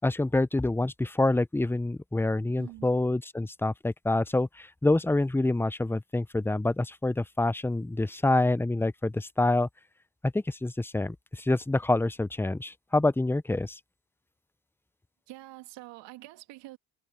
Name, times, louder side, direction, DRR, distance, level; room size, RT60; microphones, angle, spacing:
voice 1, 0.0-9.7 10.2-13.8, left 2 dB, 5° left, 0.6 m, -27 dB
voice 2, 2.6-2.9 15.3-16.8, right 17 dB, 85° right, 2.2 m, -46 dB
supercardioid pair, 70°, 42 cm